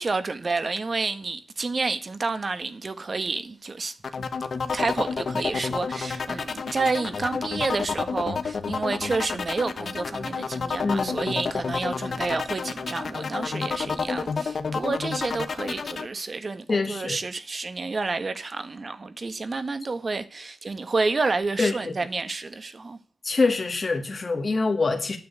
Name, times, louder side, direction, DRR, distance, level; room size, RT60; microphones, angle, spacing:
voice 1, 0.0-3.9 4.7-23.0, right 3 dB, 50° right, 1.4 m, -29 dB
sound 1, 4.0-16.1, left 5 dB, 70° left, 1.1 m, -30 dB
voice 2, 10.8-11.3 16.7-17.2 21.6-22.0 23.2-25.2, left 3 dB, 50° left, 2.0 m, -25 dB
9.3 x 7.1 x 8.1 m
cardioid pair, 65°, 0 cm